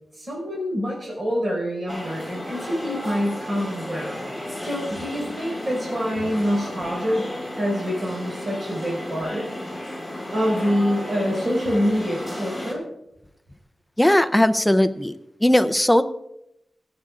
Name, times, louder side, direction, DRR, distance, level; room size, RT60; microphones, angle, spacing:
voice 1, 0.1-4.3 4.6-9.5 10.3-12.8, equal, 40° right, -2 dB, 5.0 m, -26 dB
sound 1, 1.9-12.7, left 1 dB, 10° right, 2.9 m, -33 dB
voice 2, 14.0-15.1 15.4-16.0, left 1 dB, 5° left, 11 dB, 0.5 m, -18 dB
25.0 x 8.7 x 2.4 m, 0.83 s
wide cardioid pair, 115°, 0 cm